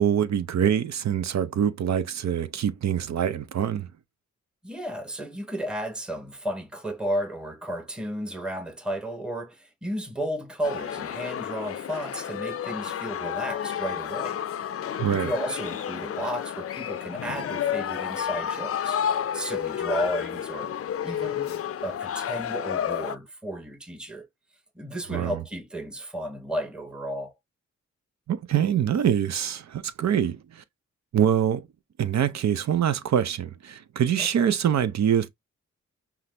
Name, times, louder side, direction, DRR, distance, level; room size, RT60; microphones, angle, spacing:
voice 1, 0.0-3.9 15.0-15.3 25.1-25.4 28.3-30.6 31.1-31.7 32.0-35.3, right 9 dB, 65° right, 0.6 m, -24 dB
voice 2, 4.6-14.4 15.1-19.0 19.3-20.7 21.0-21.5 21.8-24.3 24.8-27.3 34.2-34.5, equal, 5° right, 1.1 m, -33 dB
sound 1, 10.6-23.2, left 9 dB, 50° left, 0.4 m, -31 dB
5.6 x 2.0 x 3.3 m
cardioid pair, 70°, 29 cm